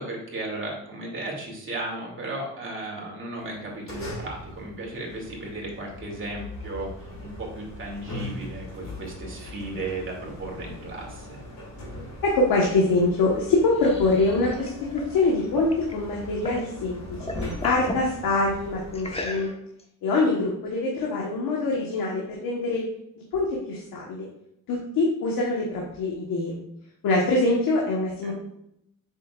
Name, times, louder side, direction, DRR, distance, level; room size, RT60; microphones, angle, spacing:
voice 1, 0.0-11.4 28.2-28.3, right 2 dB, 35° right, -2 dB, 2.6 m, -35 dB
sound 1, 3.4-19.4, left 1 dB, 55° left, 2.7 m, -40 dB
voice 2, 12.2-17.0 17.4-19.5 20.0-22.8 23.3-24.2 24.7-26.5 27.0-28.3, left 2 dB, 85° left, -2 dB, 1.4 m, -24 dB
sound 2, 13.3-16.7 17.0-18.1 18.9-19.8, left 1 dB, 20° left, 1.1 m, -37 dB
7.4 x 6.3 x 2.4 m, 0.77 s
cardioid pair, 95°, 34 cm